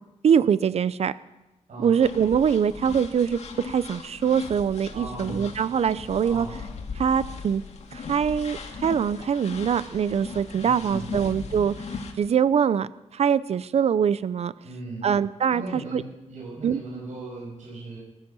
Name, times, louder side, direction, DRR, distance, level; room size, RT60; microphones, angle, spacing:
voice 1, 0.2-1.2 1.8-6.5 7.0-7.6 7.9-11.7 12.2-14.5 15.0-15.6 15.9-16.0 16.6-16.8, right 7 dB, 60° right, 16 dB, 0.5 m, -23 dB
voice 2, 1.7-2.0 4.9-5.5 6.2-6.6 10.5-11.1 14.6-15.1 15.5-18.0, right 2 dB, 75° right, -6 dB, 7.2 m, -38 dB
sound 1, 2.0-12.1, left 5 dB, 65° left, 2.0 m, -38 dB
20.0 x 10.5 x 6.1 m, 1.0 s
wide cardioid pair, 140°, 12 cm